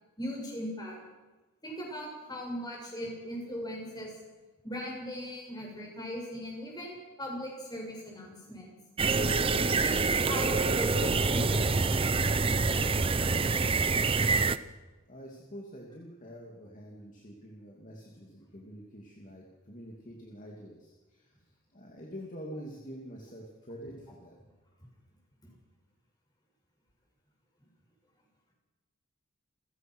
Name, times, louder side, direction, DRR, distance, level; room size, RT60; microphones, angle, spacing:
voice 1, 0.2-1.0 1.6-4.1 4.6-8.7 9.5-12.2 27.6-27.7, equal, 20° left, -1 dB, 7.1 m, -39 dB
sound 1, 9.0-14.6, right 4 dB, 25° right, 0.6 m, -26 dB
voice 2, 13.2-14.4 15.1-21.3 21.7-24.3, equal, 35° left, -1 dB, 2.8 m, -46 dB
29.0 x 16.0 x 6.3 m, 1.2 s
head